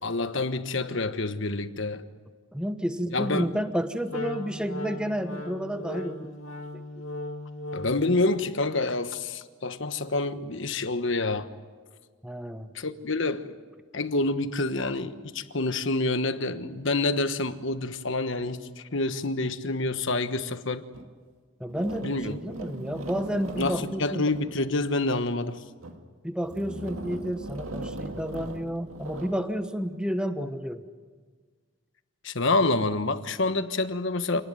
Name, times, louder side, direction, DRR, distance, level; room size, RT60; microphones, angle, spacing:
voice 1, 0.0-2.0 3.1-3.5 7.7-11.5 12.7-13.5 13.9-20.8 22.0-22.3 23.6-25.6 32.2-34.4, left 2 dB, 60° left, 10 dB, 1.3 m, -27 dB
voice 2, 2.5-6.4 6.7-6.8 12.2-12.7 21.6-24.2 26.2-30.8, equal, 5° right, 9 dB, 1.1 m, -31 dB
Wind instrument woodwind instrument, 4.1-8.1, left 1 dB, 75° left, 2.4 m, -37 dB
sound 1, 20.9-21.1 21.7-24.9 25.6-26.1 26.4-29.5, right 2 dB, 80° right, 2.0 m, -39 dB
27.5 x 19.0 x 9.5 m, 1.5 s
head